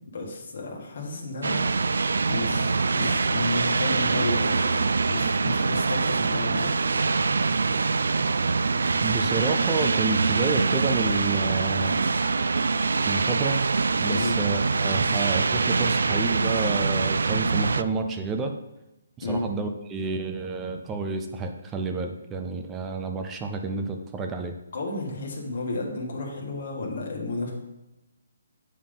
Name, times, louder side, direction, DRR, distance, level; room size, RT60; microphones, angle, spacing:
voice 1, 0.1-1.7 2.3-6.7 14.1-14.4 19.2-19.5 24.7-27.5, left 2 dB, 45° left, -2 dB, 1.7 m, -32 dB
sound 1, 1.4-17.8, right 4 dB, 85° right, 0.3 m, -24 dB
voice 2, 9.0-12.0 13.0-13.6 14.0-18.5 19.2-24.6, right 4 dB, 10° right, 5 dB, 0.4 m, -29 dB
8.9 x 3.6 x 5.4 m, 0.95 s
hypercardioid pair, 175°, 0 cm